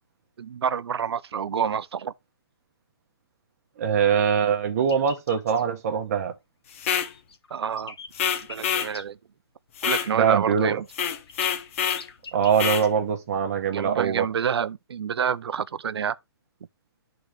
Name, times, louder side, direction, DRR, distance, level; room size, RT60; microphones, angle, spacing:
voice 1, 0.4-2.1 7.5-8.0 8.5-9.2 9.8-10.8 13.7-16.2, right 7 dB, 80° right, 0.5 m, -28 dB
voice 2, 3.8-6.3 10.1-10.8 12.3-14.2, right 7 dB, 40° right, 1.1 m, -23 dB
sound 1, 4.8-5.6 6.9-9.0 10.8-12.9, left 5 dB, 75° left, 1.5 m, -43 dB
sound 2, 6.7-7.1 8.1-8.9 9.8-10.1 10.9-12.1 12.5-12.9, left 8 dB, 30° left, 0.7 m, -26 dB
11.5 x 3.9 x 3.2 m
hypercardioid pair, 165°, 13 cm